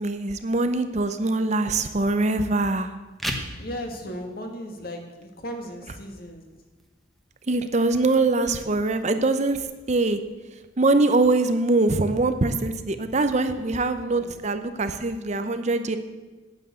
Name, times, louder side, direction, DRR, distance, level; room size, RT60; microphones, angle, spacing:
voice 1, 0.0-3.0 7.5-10.2 10.8-16.0, right 2 dB, 35° right, 9 dB, 0.7 m, -23 dB
sound 1, 3.0-14.0, equal, ahead, 1.2 m, -43 dB
voice 2, 3.6-6.5 14.1-14.4, equal, 50° left, 4 dB, 1.9 m, -36 dB
9.4 x 9.0 x 8.2 m, 1.2 s
head